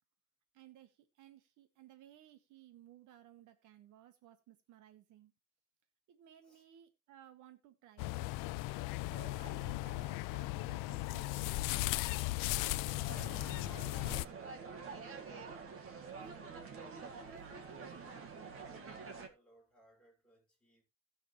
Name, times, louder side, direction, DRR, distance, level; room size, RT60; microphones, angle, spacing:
voice 1, 0.5-5.3 6.1-8.2 9.0-11.8, right 12 dB, 65° right, 1.4 m, -59 dB
sound 1, 8.0-14.2, left 19 dB, 75° left, 0.6 m, -37 dB
voice 2, 12.7-15.6 16.0-20.8, equal, 5° left, 6.1 m, -65 dB
sound 2, 13.1-19.3, right 5 dB, 45° right, 1.7 m, -47 dB
18.0 x 6.6 x 3.2 m
cardioid pair, 140°, 32 cm